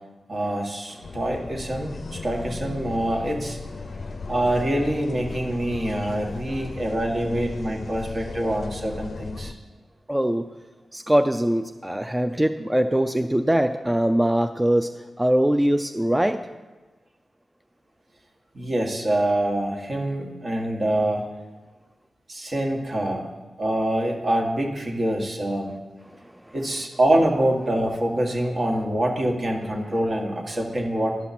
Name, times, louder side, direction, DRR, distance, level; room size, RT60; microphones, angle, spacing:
voice 1, 0.3-3.6 4.3-9.5 18.5-21.3 22.3-23.3 23.6-25.7 26.5-31.2, right 1 dB, 50° right, 1 dB, 1.6 m, -25 dB
sound 1, 1.0-9.5, left 3 dB, 60° left, 0.5 m, -36 dB
voice 2, 3.8-4.3 10.1-10.5 10.9-16.4 26.4-26.5, right 1 dB, 10° right, 7 dB, 0.4 m, -22 dB
11.0 x 5.8 x 4.2 m, 1.2 s
cardioid pair, 50°, 0 cm